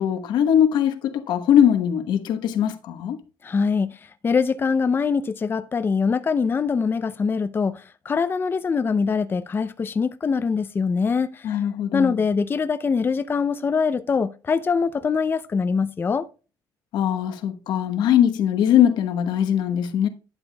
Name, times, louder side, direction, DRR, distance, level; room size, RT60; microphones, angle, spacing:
voice 1, 0.0-3.2 11.4-12.2 16.9-20.1, left 9 dB, 80° left, 1.1 m, -21 dB
voice 2, 3.4-3.9 4.2-11.6 11.9-16.3, left 5 dB, 30° left, 0.5 m, -23 dB
11.5 x 7.2 x 2.3 m
cardioid pair, 105°, 8 cm